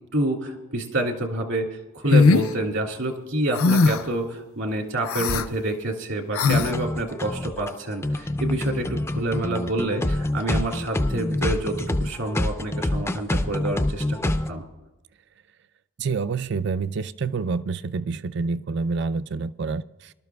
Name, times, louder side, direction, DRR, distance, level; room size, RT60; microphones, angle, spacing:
voice 1, 0.1-1.7 1.9-14.2 14.5-14.6, right 1 dB, 70° right, 2 dB, 2.3 m, -28 dB
sound 1, 2.1-2.5 3.5-4.1 5.0-5.5 6.3-6.7, left 4 dB, 80° left, 0.5 m, -18 dB
sound 2, 6.5-14.5, left 1 dB, 10° left, 0.4 m, -26 dB
voice 2, 16.0-20.1, right 4 dB, 55° right, 14 dB, 0.4 m, -27 dB
24.0 x 12.5 x 2.3 m, 1.1 s
head